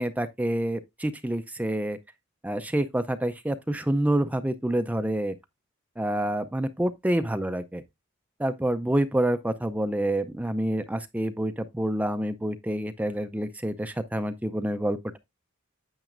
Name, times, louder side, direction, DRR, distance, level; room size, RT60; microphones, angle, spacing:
voice 1, 0.0-2.0 2.4-5.3 6.0-7.8 8.4-15.2, right 1 dB, 10° right, 0.5 m, -27 dB
9.0 x 8.2 x 2.5 m
head